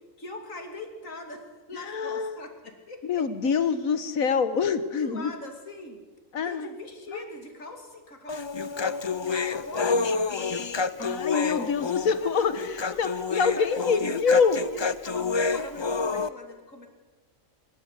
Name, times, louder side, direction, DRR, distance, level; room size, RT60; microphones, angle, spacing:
voice 1, 0.0-3.5 5.0-6.0 6.4-10.7 11.0-11.1 11.5-12.3 12.6-16.9, left 2 dB, 70° left, 4 dB, 3.2 m, -42 dB
voice 2, 1.7-2.4 3.1-5.3 6.3-6.7 11.0-12.6 13.0-14.6, left 5 dB, 90° left, 12 dB, 1.7 m, -25 dB
Human voice, 8.3-16.3, left 4 dB, 45° left, 0.3 m, -28 dB
25.5 x 13.0 x 8.2 m, 1.3 s
omnidirectional pair, 1.4 m